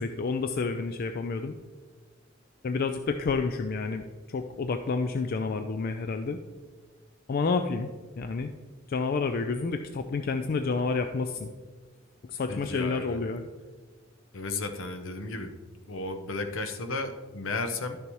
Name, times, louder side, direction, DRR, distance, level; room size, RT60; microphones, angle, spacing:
voice 1, 0.0-1.6 2.6-4.0 4.3-6.4 7.3-7.9 8.2-8.5 8.9-11.5 12.3-13.5, left 4 dB, 50° left, 7 dB, 0.4 m, -29 dB
voice 2, 12.5-13.2 14.3-15.5 15.9-18.0, left 3 dB, 70° left, 8 dB, 0.8 m, -34 dB
11.5 x 6.5 x 3.1 m, 1.4 s
head